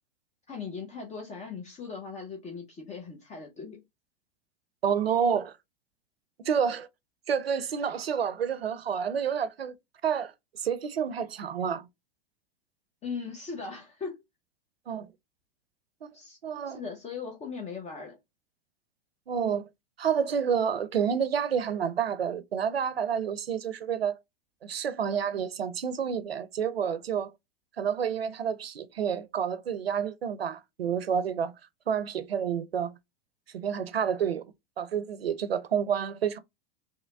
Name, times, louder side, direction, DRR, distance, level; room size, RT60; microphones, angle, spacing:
voice 1, 0.5-3.8 13.0-14.2 16.1-16.4 16.6-18.2, left 5 dB, 25° left, 0.8 m, -39 dB
voice 2, 4.8-5.5 6.5-6.9 7.3-9.7 10.0-10.3 10.6-11.9 14.9-15.1 16.0-16.1 16.4-16.8 19.3-19.6 20.0-24.2 24.6-27.3 27.8-31.5 31.9-32.9 33.5-34.5 34.8-36.4, right 7 dB, 90° right, 0.5 m, -29 dB
3.2 x 2.8 x 2.3 m
hypercardioid pair, 95°, 29 cm